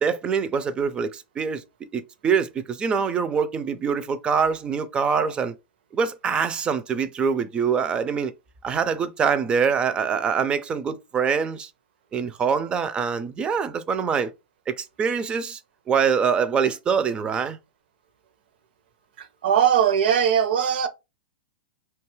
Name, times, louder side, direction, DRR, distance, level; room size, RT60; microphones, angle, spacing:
voice 1, 0.0-1.6 1.9-5.5 5.9-8.3 8.6-11.7 12.1-14.3 14.7-15.6 15.9-17.6, right 6 dB, 15° right, 0.3 m, -24 dB
voice 2, 19.2-20.9, right 8 dB, 70° right, 0.6 m, -20 dB
2.7 x 2.3 x 3.0 m
hypercardioid pair, 140°, 6 cm